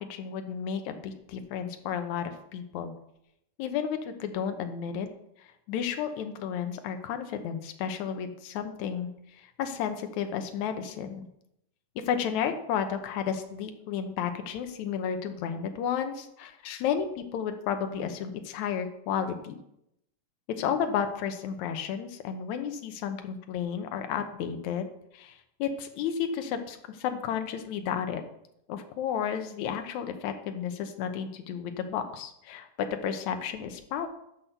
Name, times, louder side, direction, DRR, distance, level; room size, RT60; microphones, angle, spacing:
voice 1, 0.0-2.9 3.6-5.1 5.4-9.1 9.4-11.3 12.0-19.6 20.6-28.2 28.7-34.1, left 8 dB, 70° left, 7 dB, 2.0 m, -32 dB
10.0 x 6.2 x 6.9 m, 0.80 s
omnidirectional pair, 4.0 m